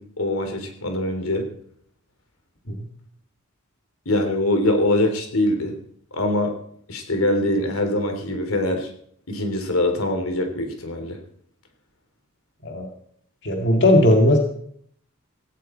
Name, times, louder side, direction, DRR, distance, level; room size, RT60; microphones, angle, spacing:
voice 1, 0.0-1.4 4.0-5.7 6.1-6.5 6.9-8.9 9.3-11.2, left 1 dB, 85° left, 5 dB, 3.3 m, -23 dB
voice 2, 13.4-14.4, left 1 dB, 60° left, 2 dB, 2.2 m, -17 dB
17.0 x 17.0 x 4.4 m, 0.66 s
head